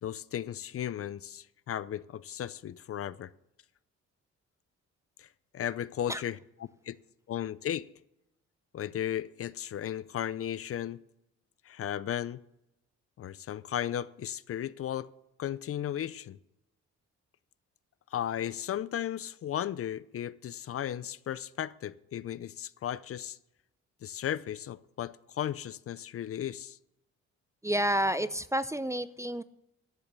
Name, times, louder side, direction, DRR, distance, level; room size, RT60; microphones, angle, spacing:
voice 1, 0.0-3.3 5.2-5.3 5.5-6.4 6.9-7.0 7.3-7.9 8.7-11.0 11.7-12.4 13.2-15.1 15.4-16.4 18.1-23.4 24.0-26.8, left 10 dB, 50° left, 0.5 m, -35 dB
voice 2, 27.6-29.4, equal, 10° right, 0.4 m, -29 dB
12.0 x 7.2 x 6.8 m
cardioid pair, 90°, 30 cm